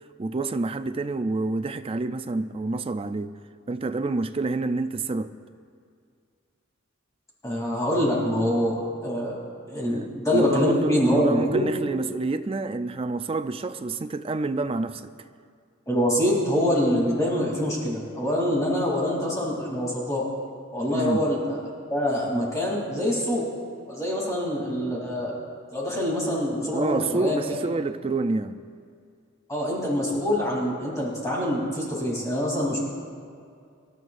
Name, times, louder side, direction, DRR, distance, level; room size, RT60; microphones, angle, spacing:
voice 1, 0.2-3.3 3.7-5.3 9.9-15.1 20.9-21.3 26.7-28.6, right 3 dB, 25° right, 0.4 m, -28 dB
voice 2, 7.4-9.4 9.7-11.6 15.9-20.2 20.7-23.5 23.9-25.4 25.7-27.6 29.5-32.8, equal, 15° left, 3.0 m, -25 dB
26.5 x 12.5 x 2.6 m
head